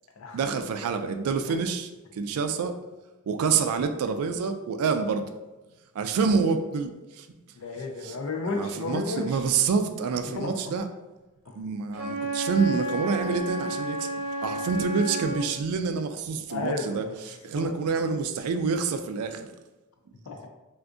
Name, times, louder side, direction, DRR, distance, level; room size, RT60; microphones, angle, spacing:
voice 1, 0.3-2.8 3.3-5.3 6.0-7.3 8.0-8.2 8.5-10.9 11.6-14.1 14.4-19.5, right 5 dB, 85° right, 8 dB, 0.3 m, -27 dB
voice 2, 7.6-9.4 10.2-10.7 11.5-11.6 16.5-17.1 17.5-17.7 20.3-20.5, left 3 dB, 70° left, 2 dB, 0.5 m, -32 dB
Wind instrument woodwind instrument, 11.9-15.5, right 1 dB, 45° right, 0.7 m, -31 dB
3.4 x 2.5 x 2.5 m, 1.1 s
head